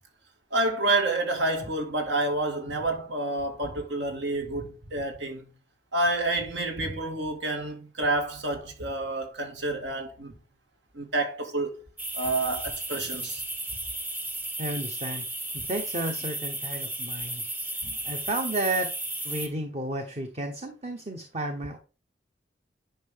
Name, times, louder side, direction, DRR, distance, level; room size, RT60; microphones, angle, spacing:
voice 1, 0.5-5.5 5.9-10.3 10.9-11.8 12.1-13.4 17.8-17.9, right 2 dB, 80° right, 2.1 m, -29 dB
sound 1, 12.0-19.5, right 1 dB, 10° right, 0.8 m, -34 dB
voice 2, 14.6-15.2 15.5-17.4 18.0-18.9 19.2-21.8, right 1 dB, 35° right, 1.0 m, -32 dB
10.5 x 5.6 x 3.6 m
head